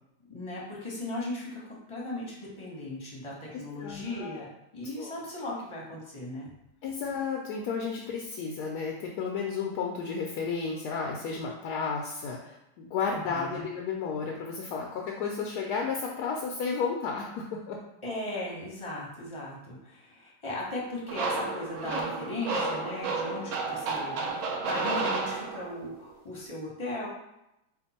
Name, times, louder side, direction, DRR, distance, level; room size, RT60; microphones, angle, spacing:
voice 1, 0.3-1.6 1.9-6.5 13.1-13.7 18.0-27.1, left 1 dB, 20° left, -4 dB, 0.9 m, -37 dB
voice 2, 3.5-4.5 5.0-5.1 6.8-17.8, left 5 dB, 75° left, 0 dB, 1.1 m, -33 dB
sound 1, 21.1-25.9, right 3 dB, 65° right, 0.8 m, -31 dB
4.4 x 2.5 x 4.2 m, 0.88 s
omnidirectional pair, 1.8 m